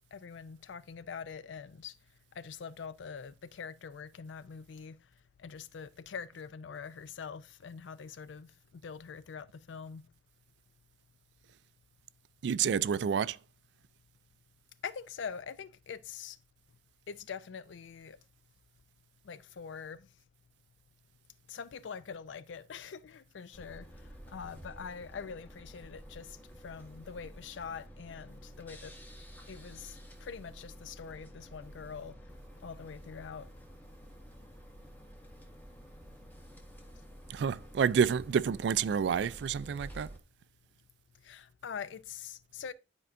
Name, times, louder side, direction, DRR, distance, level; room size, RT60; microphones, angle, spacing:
voice 1, 0.1-1.9 2.4-5.0 5.4-8.5 8.8-10.0 14.8-16.4 17.1-18.2 19.2-20.1 21.5-23.9 24.3-26.4 26.6-28.9 29.5-32.2 32.6-33.5 41.2-42.7, left 6 dB, 90° left, 0.4 m, -44 dB
voice 2, 12.4-13.4 37.3-40.1, right 7 dB, 70° right, 0.3 m, -29 dB
sound 1, 23.5-40.2, equal, 10° left, 0.8 m, -51 dB
12.0 x 4.4 x 2.5 m
head